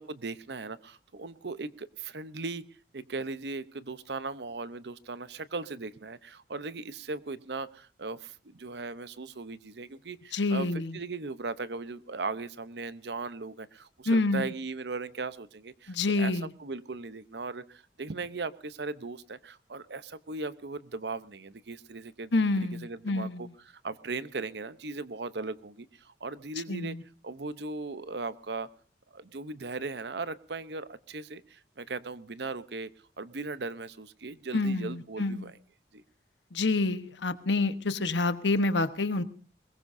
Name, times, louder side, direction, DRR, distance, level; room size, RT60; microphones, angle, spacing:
voice 1, 0.0-2.6 2.9-22.3 22.8-23.5 23.8-27.0 27.2-28.7 29.1-32.9 33.2-35.5 35.9-36.0, right 3 dB, 70° right, 14 dB, 0.8 m, -38 dB
voice 2, 10.3-11.0 14.1-14.5 15.9-16.5 22.3-23.5 26.7-27.0 34.5-35.5 36.5-39.2, left 2 dB, 80° left, 11 dB, 1.1 m, -28 dB
22.0 x 21.0 x 2.7 m, 0.38 s
head